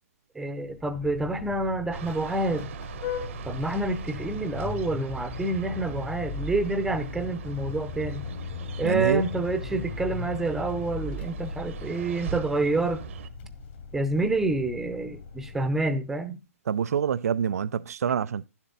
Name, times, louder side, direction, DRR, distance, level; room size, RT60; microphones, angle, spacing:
voice 1, 0.3-2.7 3.4-8.3 8.8-13.0 13.9-16.4, right 2 dB, 5° right, 0.7 m, -28 dB
Vehicle horn car horn honking, 0.6-16.0, left 4 dB, 45° left, 2.4 m, -38 dB
sound 1, 1.9-13.3, right 8 dB, 60° right, 0.9 m, -41 dB
voice 2, 8.8-9.2 16.7-18.5, right 8 dB, 85° right, 0.4 m, -26 dB
11.0 x 7.2 x 3.9 m
hypercardioid pair, 150°, 8 cm